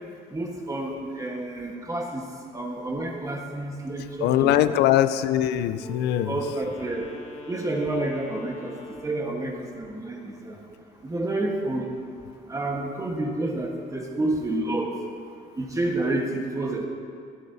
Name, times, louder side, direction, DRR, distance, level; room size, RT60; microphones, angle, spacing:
voice 1, 0.3-2.2 2.5-4.5 6.3-7.0 7.5-8.7 9.0-10.2 10.4-10.6 11.1-11.9 12.5-14.9 15.6-16.9, right 2 dB, 20° right, 1 dB, 1.3 m, -29 dB
voice 2, 4.2-6.4, left 12 dB, 85° left, 13 dB, 0.5 m, -22 dB
Wind instrument woodwind instrument, 5.7-9.3, left 3 dB, 35° left, 1.5 m, -43 dB
16.5 x 14.0 x 2.7 m, 2.2 s
cardioid pair, 110°, 17 cm